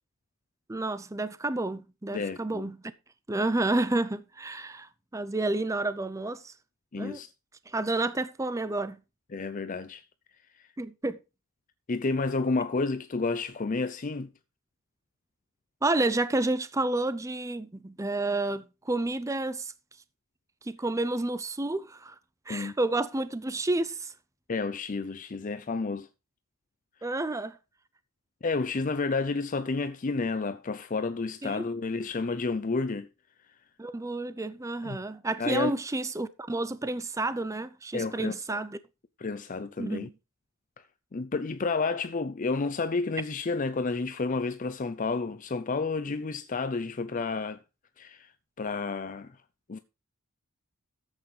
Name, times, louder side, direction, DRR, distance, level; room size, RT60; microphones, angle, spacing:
voice 1, 0.7-2.8 3.3-6.5 7.0-7.2 7.7-9.0 10.8-11.2 15.8-19.7 20.6-22.1 22.5-24.1 27.0-27.6 31.4-31.7 33.8-38.8 39.8-40.1, right 2 dB, 15° right, 0.5 m, -30 dB
voice 2, 2.1-2.7 6.9-7.3 9.3-10.0 10.6-10.7 11.9-14.3 22.5-22.7 24.5-26.1 28.4-33.1 34.8-35.0 35.4-35.7 37.9-38.6 39.2-40.1 41.1-47.6 48.0-48.3 48.6-49.4 49.7-49.8, left 3 dB, 35° left, 0.5 m, -30 dB
13.0 x 8.2 x 3.2 m
head